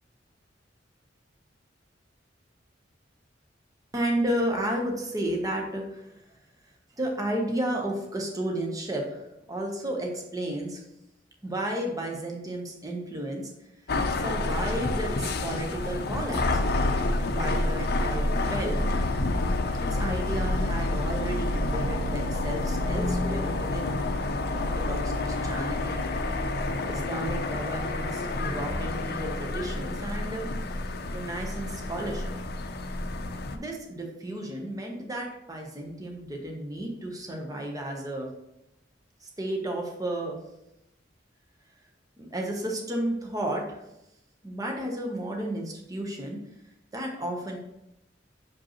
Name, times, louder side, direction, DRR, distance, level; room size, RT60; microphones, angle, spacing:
voice 1, 3.9-6.3 7.0-9.2 9.5-10.8 11.4-13.5 14.1-16.6 17.3-18.8 19.9-23.9 24.5-26.1 26.8-30.5 31.0-32.3 33.5-38.3 39.2-40.4 42.2-43.8 44.4-46.4 46.9-47.6, right 1 dB, 20° right, 1 dB, 0.9 m, -32 dB
sound 1, 13.9-33.6, left 2 dB, 60° left, 0.5 m, -29 dB
6.2 x 5.1 x 3.0 m, 0.86 s
head